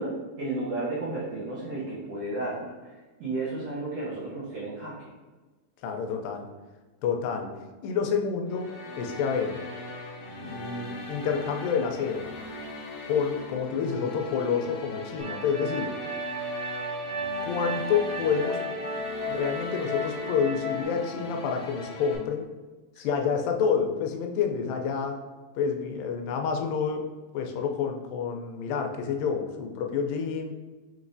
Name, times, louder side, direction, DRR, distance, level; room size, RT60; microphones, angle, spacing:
voice 1, 0.0-2.7 3.2-4.9, right 2 dB, 85° right, -7 dB, 1.3 m, -32 dB
voice 2, 5.8-6.5 7.0-9.6 10.4-12.3 13.0-16.0 17.4-18.6 19.3-22.5 23.0-25.2 25.6-27.1 27.3-30.5, left 6 dB, 85° left, 4 dB, 2.3 m, -28 dB
sound 1, 8.5-22.2, left 1 dB, 70° left, 1.6 m, -40 dB
sound 2, 15.2-20.8, equal, 65° right, 1.1 m, -34 dB
5.9 x 3.0 x 2.5 m, 1.2 s
omnidirectional pair, 3.9 m